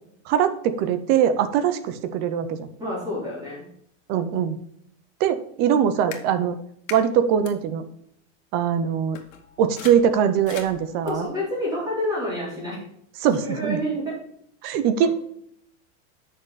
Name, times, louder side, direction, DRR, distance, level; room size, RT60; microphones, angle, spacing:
voice 1, 0.3-2.7 4.1-4.6 5.2-6.6 6.9-7.8 8.5-9.2 9.6-11.3 13.2-13.8 14.6-15.1, right 8 dB, 25° right, 10 dB, 0.6 m, -22 dB
voice 2, 2.8-3.7 11.0-12.8 13.4-14.2, left 1 dB, 10° right, -7 dB, 3.7 m, -28 dB
sound 1, 6.1-6.2 6.9-7.0 7.5-7.6 8.7-8.8 9.1-11.4, left 8 dB, 80° left, 1.8 m, -41 dB
8.4 x 6.4 x 4.1 m, 0.70 s
supercardioid pair, 180°, 38 cm